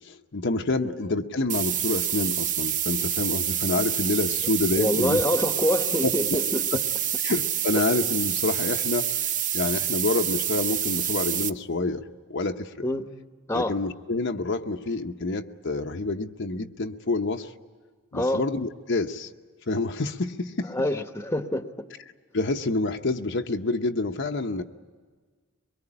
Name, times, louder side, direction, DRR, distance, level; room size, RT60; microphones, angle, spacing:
voice 1, 0.0-5.2 6.0-6.4 7.2-12.0 12.3-12.9 13.5-17.5 18.1-19.3 19.7-20.7 22.3-24.6, left 2 dB, 60° left, 5 dB, 0.9 m, -28 dB
sound 1, 1.5-11.5, right 10 dB, 40° right, 0.7 m, -27 dB
voice 2, 4.8-6.8 12.8-13.1 13.5-13.7 18.1-18.4 20.7-21.6, left 1 dB, 10° left, 7 dB, 1.1 m, -26 dB
23.5 x 22.0 x 9.9 m, 1.5 s
head